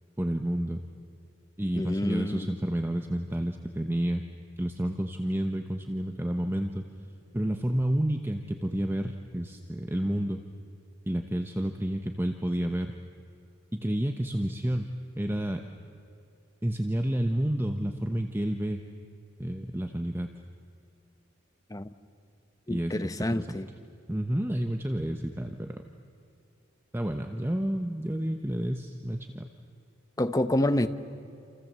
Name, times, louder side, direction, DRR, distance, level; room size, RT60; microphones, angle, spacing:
voice 1, 0.2-0.8 1.6-4.2 4.6-6.9 7.3-10.4 11.1-12.9 13.7-15.6 16.6-18.8 19.4-20.3 22.7-23.6 24.1-25.8 26.9-29.5, right 1 dB, 10° right, 1.0 m, -30 dB
voice 2, 1.7-2.5 21.7-21.9 22.7-23.7 30.2-30.9, left 1 dB, 20° left, 0.9 m, -28 dB
28.0 x 28.0 x 7.5 m
head